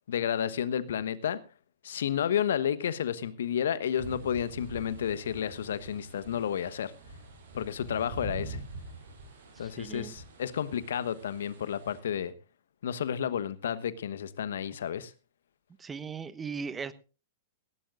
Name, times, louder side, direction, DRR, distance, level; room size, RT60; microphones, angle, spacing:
voice 1, 0.1-1.4 1.8-6.9 7.5-8.6 9.6-12.3 12.8-15.1, left 9 dB, 65° left, 15 dB, 1.2 m, -31 dB
sound 1, 4.0-12.0, right 2 dB, 60° right, 7.3 m, -45 dB
voice 2, 9.5-10.1 15.8-16.9, right 5 dB, 15° right, 14 dB, 1.1 m, -38 dB
18.0 x 16.5 x 2.5 m, 0.34 s
figure-of-eight pair, 105°, 0 cm